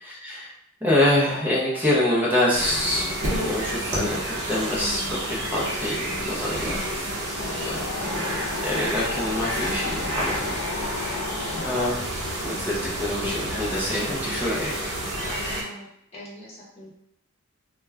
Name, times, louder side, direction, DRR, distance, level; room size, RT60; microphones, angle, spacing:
voice 1, 0.0-0.5 0.8-6.8 7.6-8.3 8.6-11.1 11.6-14.9, left 1 dB, 10° right, -6 dB, 0.6 m, -26 dB
sound 1, 2.5-15.6, right 1 dB, 55° right, 0.7 m, -30 dB
Wind, 7.4-11.9, left 6 dB, 80° left, 0.3 m, -34 dB
voice 2, 15.2-16.9, left 1 dB, 30° left, -6 dB, 0.9 m, -42 dB
2.2 x 2.1 x 3.4 m, 0.75 s
head